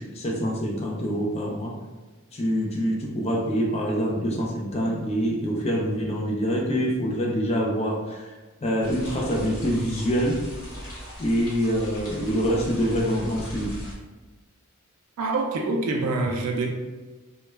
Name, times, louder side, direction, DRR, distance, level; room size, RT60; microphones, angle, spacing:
voice 1, 0.0-1.8 2.3-8.3 8.6-10.4 11.2-13.8, equal, 30° left, -1 dB, 0.4 m, -25 dB
sound 1, 8.8-14.0, equal, 75° left, 0.9 m, -39 dB
voice 2, 15.2-16.7, right 3 dB, 70° right, 2 dB, 0.3 m, -25 dB
2.2 x 2.1 x 3.1 m, 1.3 s
head